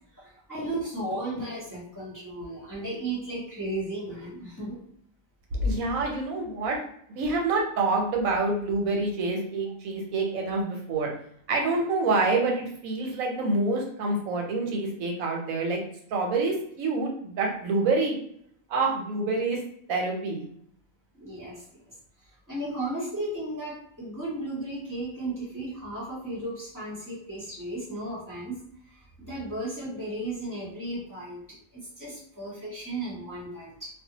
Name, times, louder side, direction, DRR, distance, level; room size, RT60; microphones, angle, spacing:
voice 1, 0.1-4.8 21.1-21.9 22.5-28.6 28.9-33.9, right 1 dB, 15° left, -9 dB, 0.8 m, -35 dB
voice 2, 5.6-6.8 7.1-11.1 11.5-15.8 16.1-18.1 18.7-19.6 19.9-20.4, right 3 dB, 85° right, 0 dB, 1.1 m, -27 dB
2.6 x 2.1 x 2.8 m, 0.66 s
omnidirectional pair, 1.4 m